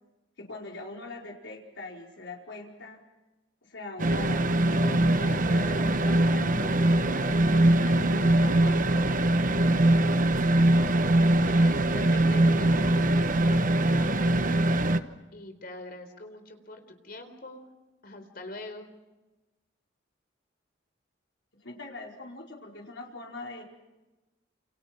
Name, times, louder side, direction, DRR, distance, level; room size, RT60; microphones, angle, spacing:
voice 1, 0.4-3.0 3.6-9.3 21.6-23.6, left 2 dB, 85° left, -1 dB, 4.9 m, -42 dB
sound 1, 4.0-15.0, right 1 dB, 45° right, 1.1 m, -22 dB
voice 2, 11.4-14.6 15.3-17.7 18.0-18.9, left 2 dB, 55° left, 7 dB, 4.2 m, -44 dB
29.0 x 29.0 x 6.0 m, 1.1 s
head